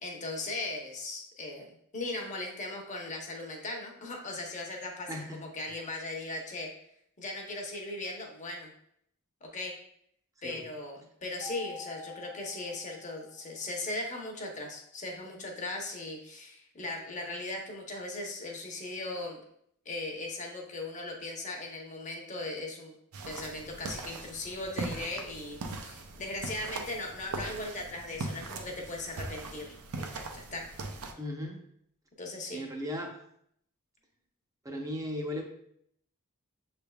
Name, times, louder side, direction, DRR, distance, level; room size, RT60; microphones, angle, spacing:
voice 1, 0.0-6.7 7.2-8.7 9.4-9.7 10.4-19.4 19.9-22.9 23.3-30.7 32.2-32.6, left 2 dB, 35° left, 0 dB, 0.8 m, -38 dB
voice 2, 5.1-5.4 10.4-10.6 31.2-31.6 32.5-33.2 34.6-35.4, left 1 dB, 15° right, 2 dB, 0.6 m, -36 dB
Mallet percussion, 11.4-13.7, left 5 dB, 50° right, 0.8 m, -47 dB
sound 1, 23.1-31.1, right 3 dB, 85° right, 0.6 m, -40 dB
6.8 x 3.3 x 2.3 m, 0.69 s
head